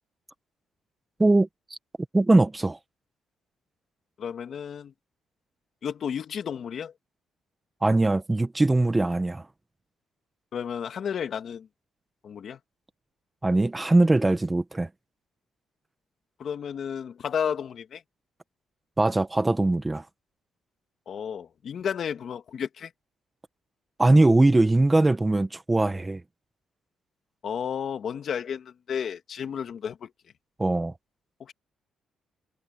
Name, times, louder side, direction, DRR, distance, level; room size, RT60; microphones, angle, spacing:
voice 1, 1.2-1.8 2.1-2.8 7.8-9.4 13.4-14.9 19.0-20.0 24.0-26.2 30.6-30.9, right 2 dB, 15° right, 1.2 m, -21 dB
voice 2, 4.2-4.9 5.8-6.9 10.5-11.7 12.2-12.6 16.4-18.0 21.1-22.9 27.4-30.1 31.4-31.5, left 7 dB, 60° left, 2.1 m, -32 dB
cardioid pair, 90°, 0 cm